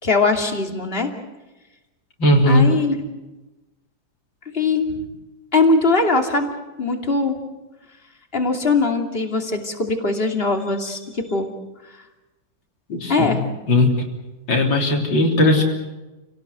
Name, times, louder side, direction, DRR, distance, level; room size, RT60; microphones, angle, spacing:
voice 1, 0.0-1.1 2.5-2.9 4.5-5.1 5.5-7.4 8.3-11.5 13.1-13.4, left 3 dB, 30° left, 4 dB, 2.8 m, -21 dB
voice 2, 2.2-2.6 12.9-13.4 13.7-14.1 14.5-15.6, left 1 dB, 70° left, 0 dB, 4.2 m, -17 dB
29.5 x 18.0 x 8.1 m, 1.1 s
omnidirectional pair, 2.1 m